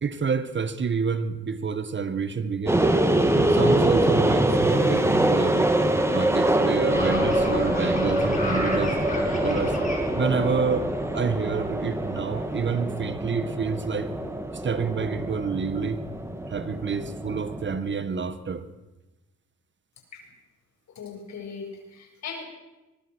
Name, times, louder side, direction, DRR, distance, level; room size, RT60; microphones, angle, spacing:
voice 1, 0.0-2.9 3.3-5.7 6.1-9.0 9.4-9.8 10.2-14.1 14.5-16.0 16.5-18.7, right 5 dB, 40° right, 12 dB, 1.8 m, -28 dB
sound 1, 2.7-17.9, right 1 dB, 10° right, 3.0 m, -24 dB
sound 2, 6.9-12.3, left 2 dB, 25° left, 7.7 m, -33 dB
voice 2, 21.0-22.4, left 5 dB, 65° left, 3 dB, 7.2 m, -38 dB
23.0 x 22.5 x 6.5 m, 1.1 s
cardioid pair, 90°, 30 cm